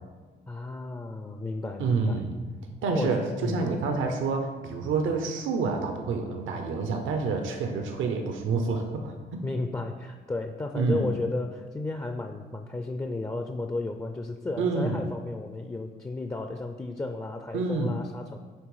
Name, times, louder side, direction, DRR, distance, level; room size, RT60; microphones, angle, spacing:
voice 1, 0.5-2.2 2.9-3.7 9.4-18.4, left 2 dB, 15° left, 5 dB, 0.4 m, -33 dB
voice 2, 1.8-2.3 2.8-9.5 10.7-11.1 14.6-15.0 17.5-17.9, right 4 dB, 80° right, 4 dB, 0.8 m, -28 dB
8.9 x 3.3 x 4.8 m, 1.4 s
cardioid pair, 90°, 20 cm